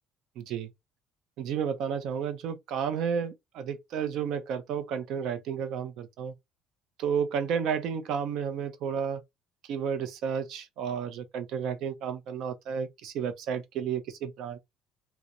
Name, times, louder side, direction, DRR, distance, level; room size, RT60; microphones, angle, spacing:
voice 1, 0.4-0.7 1.4-6.3 7.0-9.2 9.6-14.6, right 7 dB, 60° right, 0.5 m, -32 dB
2.4 x 2.0 x 2.8 m
cardioid pair, 140°, 0 cm